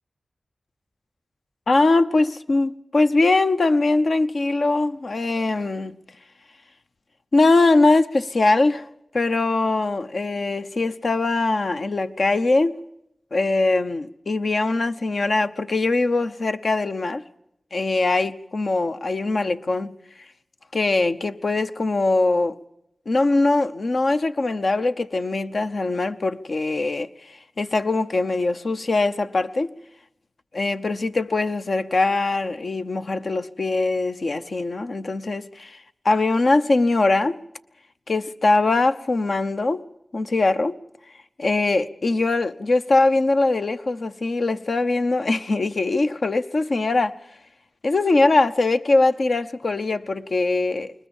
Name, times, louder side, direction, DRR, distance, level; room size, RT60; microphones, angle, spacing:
voice 1, 1.7-6.0 7.3-8.8 9.1-12.8 13.3-17.2 17.7-20.0 20.7-22.6 23.1-29.7 30.5-35.8 36.0-37.4 38.1-39.8 40.1-40.8 41.4-47.2 47.8-50.9, left 2 dB, 65° left, 0.8 m, -21 dB
21.0 x 20.0 x 7.1 m
cardioid pair, 50°, 0 cm